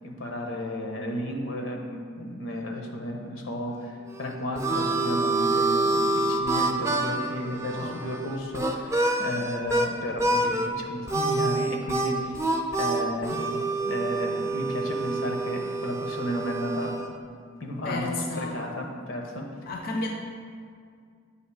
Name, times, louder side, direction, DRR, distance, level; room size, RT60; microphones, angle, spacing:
voice 1, 0.0-3.9 4.2-12.4 12.8-17.0 17.6-19.5, left 1 dB, 85° left, 2 dB, 0.9 m, -33 dB
Harmonica, 4.1-9.9 10.2-10.7 11.1-17.1, right 2 dB, 15° right, 0.4 m, -27 dB
voice 2, 7.7-8.0 17.8-18.6 19.7-20.1, left 2 dB, 50° left, 1 dB, 0.5 m, -32 dB
8.1 x 2.9 x 4.8 m, 2.2 s
head